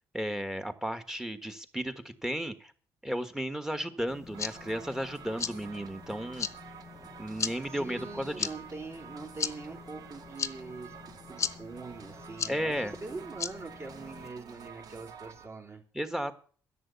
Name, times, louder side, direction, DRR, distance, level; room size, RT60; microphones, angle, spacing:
voice 1, 0.1-1.9 2.2-2.7 3.0-6.5 7.2-8.5 12.5-13.0 15.9-16.3, equal, 5° right, 9 dB, 1.4 m, -34 dB
sound 1, 4.1-14.3, left 6 dB, 40° left, 0.9 m, -39 dB
sound 2, 4.3-15.5, right 7 dB, 55° right, 1.1 m, -50 dB
voice 2, 7.7-15.8, right 4 dB, 35° right, 0 dB, 3.2 m, -43 dB
11.0 x 7.7 x 8.3 m, 0.43 s
cardioid pair, 110°, 8 cm